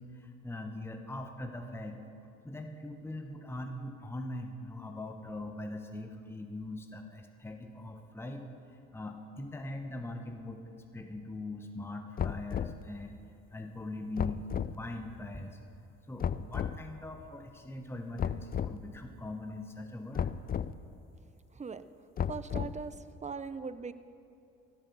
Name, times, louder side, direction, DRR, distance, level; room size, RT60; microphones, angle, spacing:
voice 1, 0.0-2.0 2.4-8.4 8.7-10.6 10.9-13.2 13.5-14.5 14.8-15.6 16.1-20.4, left 2 dB, 10° left, 5 dB, 1.0 m, -41 dB
sound 1, 12.2-12.8 14.2-14.7 16.2-16.8 18.2-18.8 20.1-20.7 22.2-22.9, left 8 dB, 30° left, 0.4 m, -33 dB
voice 2, 21.5-21.8 22.3-23.9, right 5 dB, 25° right, 13 dB, 0.6 m, -40 dB
16.0 x 7.8 x 6.9 m, 2.6 s
supercardioid pair, 70°, 31 cm